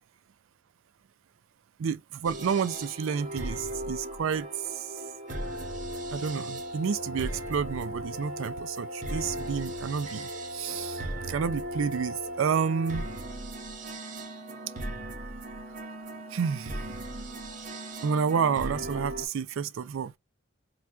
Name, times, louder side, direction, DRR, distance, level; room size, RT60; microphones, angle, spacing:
voice 1, 1.8-4.5 4.7-4.9 6.1-11.0 11.3-13.1 16.3-16.8 18.0-20.1, right 6 dB, 75° right, 0.4 m, -30 dB
sound 1, 2.2-19.3, right 1 dB, 40° right, 0.6 m, -37 dB
4.3 x 2.3 x 2.3 m
head